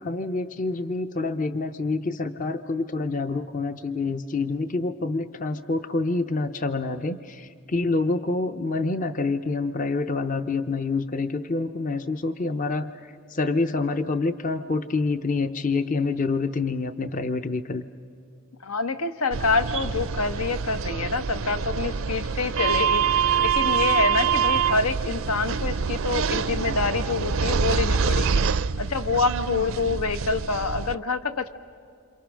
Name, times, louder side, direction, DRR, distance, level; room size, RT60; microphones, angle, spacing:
voice 1, 0.0-12.9 13.3-17.8, left 3 dB, 35° left, 10 dB, 0.6 m, -27 dB
voice 2, 18.6-28.4 28.8-31.5, left 4 dB, 85° left, 8 dB, 1.2 m, -26 dB
sound 1, 19.3-31.0, right 6 dB, 65° right, 0.5 m, -25 dB
28.0 x 26.5 x 6.3 m, 2.4 s
head